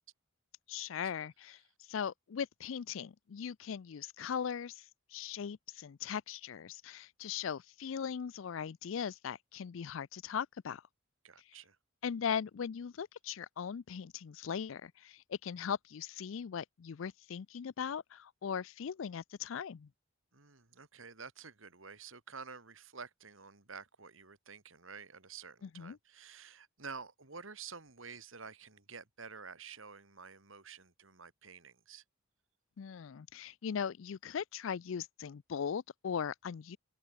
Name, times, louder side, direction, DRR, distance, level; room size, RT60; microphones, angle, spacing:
voice 1, 0.7-1.6 1.9-4.8 5.1-10.8 12.0-19.9 25.6-26.0 32.8-36.8, left 7 dB, 70° left, 0.4 m, -39 dB
voice 2, 11.2-11.8 20.3-32.0, right 5 dB, 70° right, 2.6 m, -50 dB
open air
head